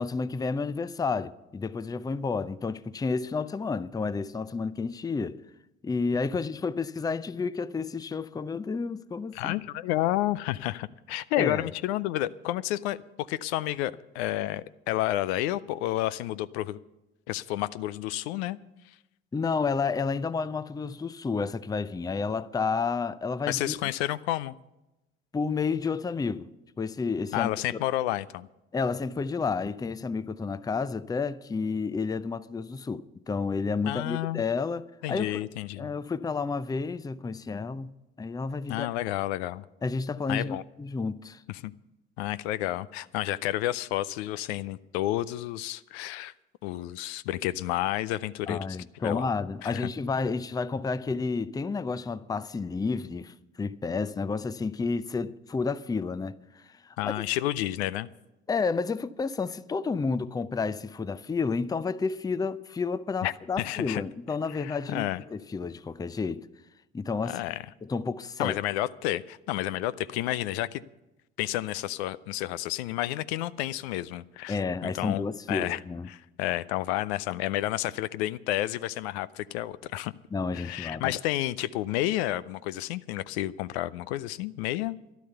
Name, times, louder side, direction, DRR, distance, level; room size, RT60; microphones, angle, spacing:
voice 1, 0.0-5.4 5.8-9.6 11.3-11.7 19.3-23.7 25.3-26.5 26.8-27.5 28.7-35.5 35.8-37.9 38.2-38.9 39.8-41.4 48.5-57.1 58.5-66.5 66.9-67.4 67.8-68.6 74.5-76.1 80.3-81.1, left 4 dB, 10° left, 0.5 m, -31 dB
voice 2, 9.3-16.8 17.3-18.6 23.5-24.5 27.3-28.5 33.9-34.4 35.0-35.9 38.7-39.6 40.3-40.6 41.6-41.7 42.2-46.3 46.6-48.6 49.0-49.3 49.6-49.9 57.0-58.1 63.2-64.0 64.5-65.2 67.3-67.6 68.4-70.8 71.4-75.8 76.1-80.1 80.5-85.0, left 15 dB, 70° left, 0.5 m, -30 dB
12.5 x 11.5 x 6.7 m
hypercardioid pair, 60°, 33 cm